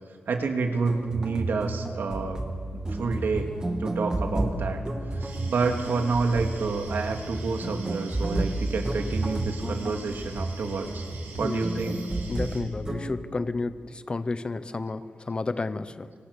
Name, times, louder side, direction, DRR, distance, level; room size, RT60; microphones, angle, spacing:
voice 1, 0.3-3.5 3.8-4.8 5.1-11.0 11.4-12.0, right 4 dB, 60° right, 4 dB, 2.7 m, -29 dB
sound 1, 0.7-13.1, right 1 dB, 20° right, 2.4 m, -32 dB
sound 2, 5.2-12.6, right 3 dB, 80° right, 6.8 m, -47 dB
voice 2, 12.3-16.1, left 3 dB, 25° left, 12 dB, 0.8 m, -31 dB
26.5 x 25.0 x 6.9 m, 2.2 s
wide cardioid pair, 160°, 4 cm